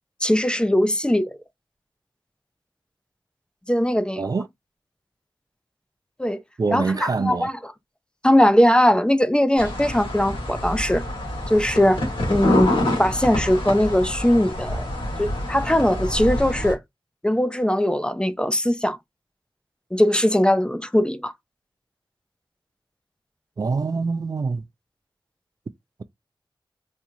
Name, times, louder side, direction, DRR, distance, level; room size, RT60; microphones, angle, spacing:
voice 1, 0.2-1.3 3.7-4.2 6.2-6.4 6.7-7.5 8.2-11.0 11.5-12.0 12.3-14.9 15.2-16.8 17.2-19.0 19.9-21.3, left 1 dB, 10° left, 0.5 m, -20 dB
voice 2, 4.2-4.5 6.6-7.5 23.6-24.6, right 4 dB, 45° right, 0.3 m, -25 dB
sound 1, 9.6-16.7, left 1 dB, 85° left, 1.7 m, -27 dB
4.3 x 2.4 x 2.7 m
wide cardioid pair, 60°, 9 cm